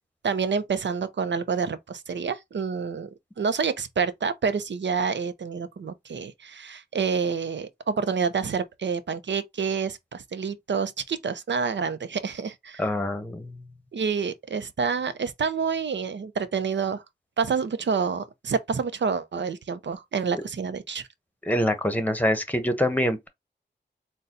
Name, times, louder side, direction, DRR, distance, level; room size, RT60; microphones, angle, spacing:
voice 1, 0.2-3.1 3.4-12.8 13.9-17.0 17.4-21.1, right 5 dB, 85° right, 0.6 m, -28 dB
voice 2, 12.8-13.6 20.3-20.4 21.4-23.3, equal, 10° left, 1.0 m, -25 dB
4.1 x 2.3 x 3.8 m
wide cardioid pair, 55°, 18 cm